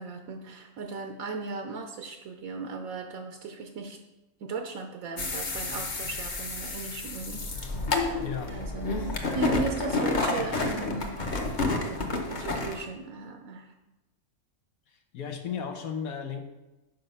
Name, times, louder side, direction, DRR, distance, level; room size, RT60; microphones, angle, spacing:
voice 1, 0.0-4.0 4.4-7.5 8.5-8.9 9.3-11.2 11.8-13.7, right 4 dB, 75° right, 4 dB, 1.1 m, -37 dB
sound 1, 5.2-12.8, left 3 dB, 40° left, 0.9 m, -30 dB
voice 2, 8.2-8.5 14.9-16.4, left 7 dB, 90° left, 5 dB, 1.2 m, -35 dB
7.1 x 5.2 x 5.5 m, 1.0 s
omnidirectional pair, 1.5 m